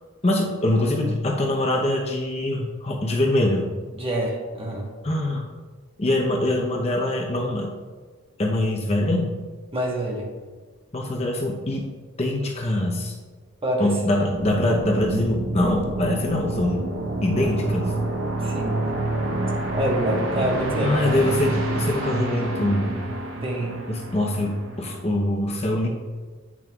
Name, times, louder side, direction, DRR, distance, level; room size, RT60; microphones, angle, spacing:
voice 1, 0.2-3.7 5.0-5.4 6.0-7.7 8.4-9.3 10.9-11.9 12.2-13.2 13.8-16.9 17.2-17.9 20.8-23.1 23.9-25.9, left 1 dB, 30° left, 0 dB, 0.7 m, -23 dB
voice 2, 3.9-4.9 9.7-10.3 13.6-14.3 18.4-18.8 19.7-21.3 23.4-23.8, right 1 dB, 25° right, -1 dB, 1.1 m, -26 dB
sound 1, 14.3-25.0, right 2 dB, 70° right, 0.9 m, -28 dB
8.7 x 6.1 x 2.3 m, 1.4 s
head